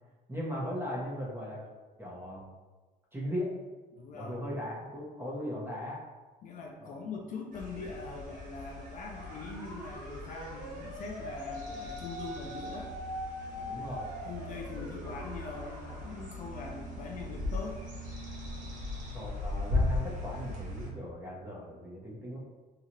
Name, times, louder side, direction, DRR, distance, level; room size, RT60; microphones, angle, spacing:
voice 1, 0.3-1.6 2.0-2.5 3.1-3.5 4.1-6.0 6.8-7.0 13.6-14.1 19.1-22.4, equal, 15° right, -5 dB, 0.9 m, -38 dB
voice 2, 3.9-4.4 6.4-12.9 13.5-13.8 14.2-17.8, left 4 dB, 50° left, 1 dB, 0.4 m, -42 dB
sound 1, 7.5-20.9, left 2 dB, 50° right, 0.8 m, -38 dB
sound 2, 9.2-16.4, equal, 75° right, 1.1 m, -43 dB
2.8 x 2.4 x 2.9 m, 1.3 s
cardioid pair, 110°, 17 cm